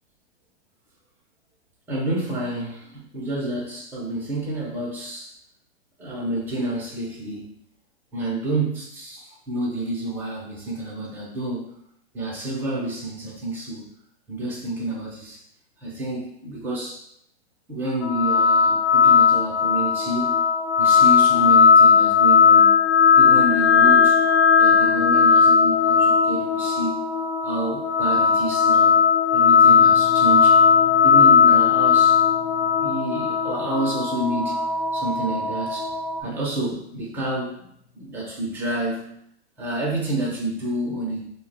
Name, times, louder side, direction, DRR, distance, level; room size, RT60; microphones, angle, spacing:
voice 1, 1.9-5.3 6.0-7.5 8.1-11.7 12.1-13.9 14.3-15.4 15.8-17.0 17.7-20.4 20.8-22.7 23.2-24.2 24.6-27.0 27.4-29.0 29.3-30.6 31.0-32.2 32.8-34.6 34.9-35.9 36.2-37.6 38.0-39.1 39.6-41.3, right 1 dB, 5° right, -4 dB, 0.4 m, -29 dB
sound 1, 18.0-36.2, left 6 dB, 75° left, 0.5 m, -17 dB
sound 2, 29.6-39.1, left 5 dB, 40° left, 0.7 m, -47 dB
2.8 x 2.1 x 3.9 m, 0.71 s
hypercardioid pair, 135°, 34 cm